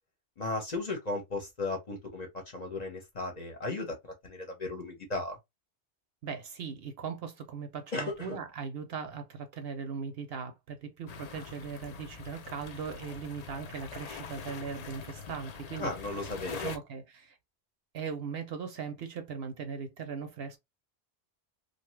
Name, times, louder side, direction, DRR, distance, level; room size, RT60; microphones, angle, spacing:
voice 1, 0.4-4.0 4.2-5.4 7.9-8.4 15.8-16.7, left 2 dB, 40° left, 0.8 m, -35 dB
voice 2, 6.2-15.9 16.5-17.4 17.9-20.6, right 6 dB, 65° right, 0.7 m, -39 dB
sound 1, 11.1-16.8, left 6 dB, 65° left, 0.4 m, -44 dB
2.7 x 2.2 x 3.0 m
omnidirectional pair, 1.2 m